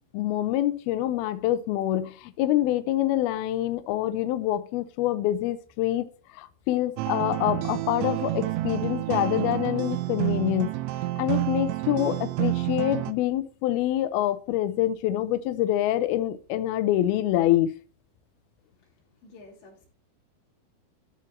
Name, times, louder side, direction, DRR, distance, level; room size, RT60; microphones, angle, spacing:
voice 1, 0.1-6.1 6.3-17.7, left 13 dB, 90° left, 11 dB, 2.1 m, -26 dB
sound 1, 7.0-13.1, right 17 dB, 80° right, 3.0 m, -29 dB
voice 2, 18.7-19.9, left 2 dB, 65° left, -1 dB, 5.8 m, -52 dB
13.0 x 4.6 x 7.3 m, 0.41 s
omnidirectional pair, 5.6 m